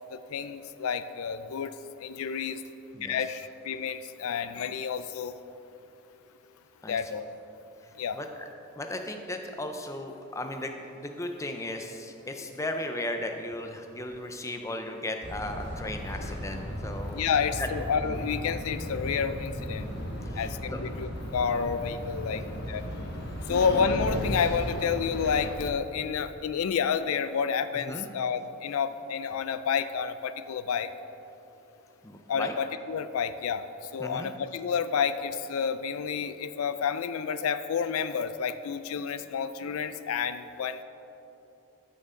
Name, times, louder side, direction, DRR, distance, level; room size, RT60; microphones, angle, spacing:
voice 1, 0.1-1.7 2.0-2.6 3.0-5.3 6.9-7.3 8.0-8.2 17.1-19.9 20.4-22.8 23.5-30.9 32.3-40.8, left 6 dB, 75° left, 12 dB, 0.4 m, -30 dB
voice 2, 8.1-8.5 8.8-17.2 17.6-17.7 18.1-18.2 19.7-20.0 20.3-20.8 22.3-22.6 27.8-28.1 32.0-32.5 34.0-34.3, left 1 dB, 15° left, 5 dB, 0.5 m, -36 dB
sound 1, 15.2-25.5, equal, 50° left, 1.4 m, -35 dB
13.5 x 6.5 x 3.8 m, 2.9 s
head